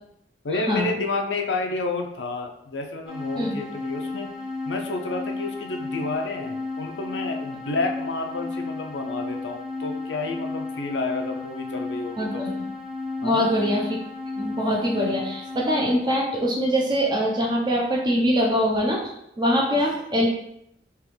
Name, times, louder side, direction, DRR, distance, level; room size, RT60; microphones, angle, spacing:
voice 1, 0.4-4.3 4.7-12.4 13.2-13.5, left 3 dB, 85° left, 3 dB, 0.6 m, -30 dB
sound 1, 3.1-15.9, left 3 dB, ahead, 1.1 m, -33 dB
voice 2, 12.2-12.7 13.2-13.9 14.4-20.3, equal, 25° right, -1 dB, 0.7 m, -23 dB
3.5 x 3.0 x 3.3 m, 0.77 s
head